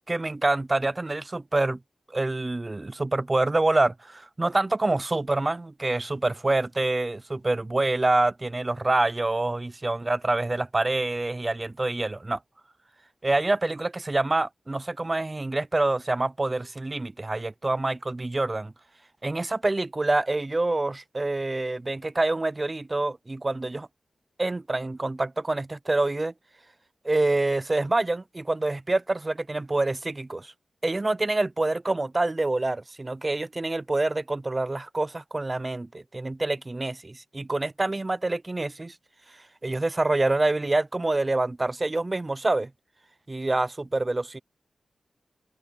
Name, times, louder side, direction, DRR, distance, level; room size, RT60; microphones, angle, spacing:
voice 1, 0.1-1.8 2.1-12.4 13.2-18.7 19.2-23.9 24.4-26.3 27.0-30.5 30.8-38.9 39.6-42.7 43.3-44.4, right 2 dB, 25° right, 0.4 m, -26 dB
wide cardioid pair, 110°, 0 cm